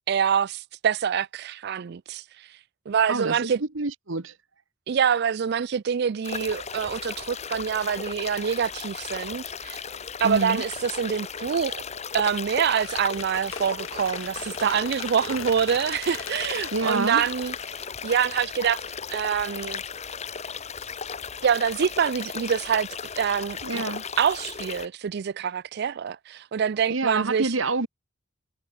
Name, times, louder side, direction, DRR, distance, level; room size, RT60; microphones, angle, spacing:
voice 1, 0.1-2.2 2.9-3.6 4.9-9.8 10.2-11.8 12.1-17.5 18.0-18.8 19.1-19.8 21.4-22.9 23.2-23.8 24.2-27.5, right 7 dB, 55° right, 0.4 m, -25 dB
voice 2, 3.1-4.3 10.2-10.6 16.7-17.2 23.6-24.0 26.9-27.9, right 3 dB, 70° right, 1.6 m, -27 dB
sound 1, 6.2-24.9, left 6 dB, 35° left, 1.1 m, -36 dB
Squeak, 12.8-18.6, left 8 dB, 85° left, 2.3 m, -40 dB
head